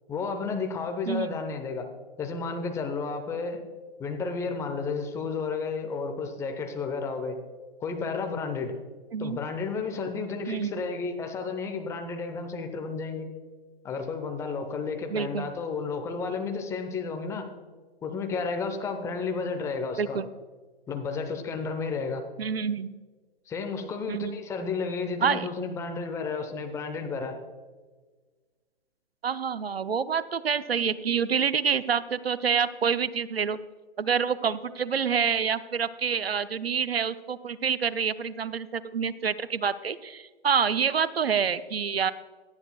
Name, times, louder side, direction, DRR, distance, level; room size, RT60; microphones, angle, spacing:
voice 1, 0.1-1.9 2.2-3.6 4.0-7.4 7.8-8.7 9.2-13.3 13.8-17.4 18.0-20.2 20.9-22.2 23.5-27.4, left 4 dB, 10° left, 4 dB, 0.7 m, -32 dB
voice 2, 1.1-1.4 9.1-9.4 10.5-10.8 15.1-15.5 20.0-20.3 22.4-22.9 24.1-24.4 25.2-25.5 29.2-33.6 34.0-42.1, right 6 dB, 70° right, 15 dB, 0.6 m, -27 dB
17.5 x 12.0 x 2.3 m, 1.4 s
figure-of-eight pair, 125°, 32 cm